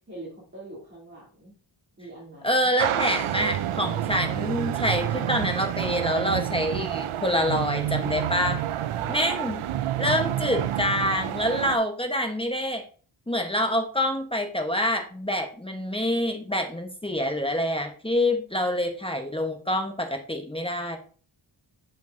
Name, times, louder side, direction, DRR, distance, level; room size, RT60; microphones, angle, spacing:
voice 1, 0.0-1.5 2.0-2.7 9.0-9.4, right 1 dB, 25° right, -8 dB, 2.6 m, -43 dB
voice 2, 2.4-8.6 9.1-9.6 10.0-12.8 13.3-21.0, left 1 dB, 10° left, 4 dB, 1.0 m, -26 dB
sound 1, 2.8-11.8, right 11 dB, 80° right, 0.5 m, -29 dB
7.0 x 5.7 x 2.6 m, 0.41 s
wide cardioid pair, 125°, 49 cm